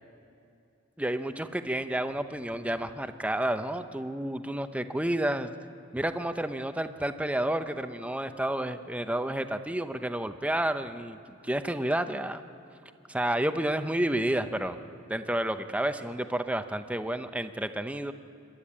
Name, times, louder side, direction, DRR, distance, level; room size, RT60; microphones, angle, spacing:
voice 1, 1.0-5.5 5.9-12.4 13.1-14.8 15.1-18.1, right 1 dB, 5° right, 9 dB, 0.7 m, -30 dB
27.0 x 12.0 x 8.7 m, 2.6 s
head